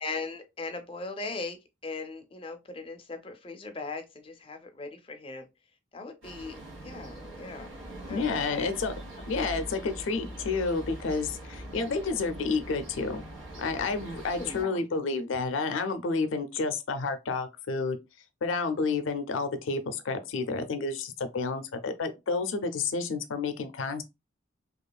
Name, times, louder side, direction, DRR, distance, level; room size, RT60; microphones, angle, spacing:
voice 1, 0.0-5.5 5.9-6.5 6.8-7.7 8.1-8.7 14.4-14.8, left 3 dB, 30° left, 0.4 m, -39 dB
sound 1, 6.2-14.6, right 1 dB, 85° right, 1.5 m, -42 dB
voice 2, 8.1-8.9 9.3-13.3 13.6-18.0 18.4-24.0, left 4 dB, 85° left, 0.4 m, -30 dB
2.9 x 2.3 x 2.2 m
head